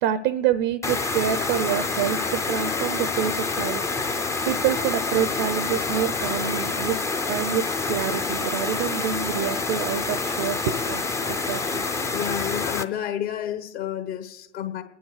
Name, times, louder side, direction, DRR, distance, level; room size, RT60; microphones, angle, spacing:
voice 1, 0.0-7.0 7.3-11.0 11.3-11.9, right 10 dB, 40° right, 15 dB, 0.5 m, -27 dB
sound 1, 0.8-12.8, left 3 dB, 10° left, 0.4 m, -27 dB
voice 2, 12.1-14.8, left 10 dB, 65° left, 4 dB, 1.4 m, -30 dB
29.0 x 9.9 x 3.2 m, 1.0 s
figure-of-eight pair, 95°, 36 cm